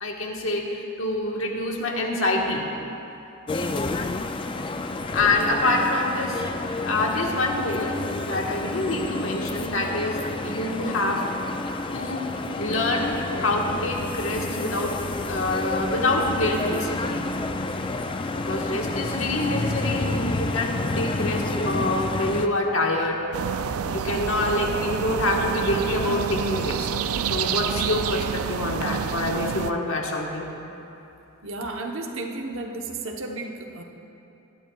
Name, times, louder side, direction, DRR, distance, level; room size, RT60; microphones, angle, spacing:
voice 1, 0.0-2.7 5.1-6.4 6.8-7.9 8.2-11.2 11.9-12.2 12.6-14.9 15.2-17.2 18.3-23.2 23.8-26.9 27.2-30.5, left 2 dB, 65° left, 0 dB, 1.3 m, -26 dB
sound 1, 3.5-22.5, left 2 dB, 25° left, 0.3 m, -29 dB
sound 2, 23.3-29.7, right 7 dB, 80° right, 0.4 m, -28 dB
voice 2, 31.4-33.8, right 2 dB, 65° right, 2 dB, 1.0 m, -33 dB
19.0 x 12.0 x 2.3 m, 2.9 s
head